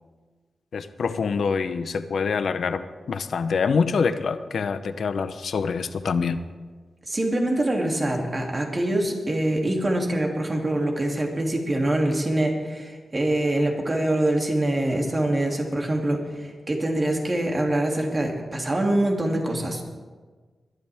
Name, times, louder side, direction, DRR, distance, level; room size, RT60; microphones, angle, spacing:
voice 1, 0.7-6.4, left 5 dB, 75° left, 11 dB, 0.7 m, -25 dB
voice 2, 7.1-19.8, right 1 dB, 30° right, 1 dB, 2.6 m, -24 dB
21.0 x 12.0 x 3.5 m, 1.4 s
cardioid pair, 85°, 0 cm